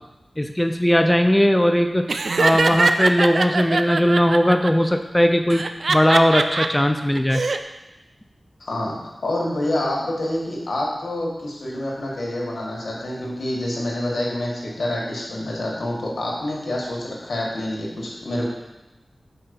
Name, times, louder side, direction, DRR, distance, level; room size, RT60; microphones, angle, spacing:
voice 1, 0.4-2.1 2.4-5.6 5.9-7.4, equal, 10° left, 6 dB, 0.4 m, -18 dB
Laughter, 2.1-4.7 5.5-6.7 7.1-7.6, right 3 dB, 70° right, 0.4 m, -22 dB
voice 2, 8.6-18.5, left 1 dB, 75° left, -3 dB, 1.8 m, -27 dB
5.6 x 4.7 x 5.3 m, 1.0 s
wide cardioid pair, 60°, 0 cm